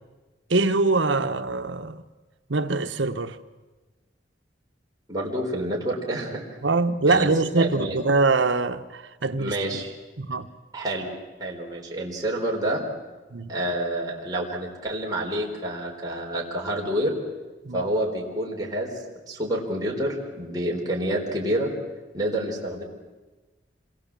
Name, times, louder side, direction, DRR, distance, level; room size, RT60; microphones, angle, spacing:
voice 1, 0.5-2.0 2.5-3.4 6.6-9.8 10.2-10.5 13.3-13.5 17.6-17.8, right 3 dB, 85° right, 1.2 m, -23 dB
voice 2, 5.1-6.4 7.1-7.3 7.6-8.0 9.4-9.9 10.7-11.1 11.4-12.8 13.5-17.1 17.7-21.7 22.1-22.8, right 1 dB, 20° right, 4.4 m, -28 dB
27.5 x 22.0 x 7.6 m
head